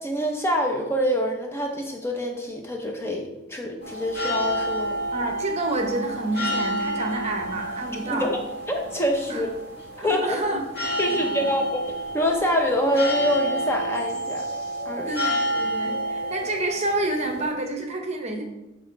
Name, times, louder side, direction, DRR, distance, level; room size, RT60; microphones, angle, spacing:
voice 1, 0.0-5.0 8.0-8.4 8.7-9.5 10.0-10.4 11.0-14.5 14.8-15.1, equal, 10° left, 2 dB, 0.8 m, -25 dB
sound 1, 3.8-17.5, right 1 dB, 45° left, 2.4 m, -30 dB
voice 2, 5.1-8.3 9.3-9.4 10.0-10.7 11.1-11.6 15.1-18.4, right 2 dB, 30° right, 2 dB, 0.9 m, -29 dB
8.2 x 3.8 x 4.6 m, 0.97 s
head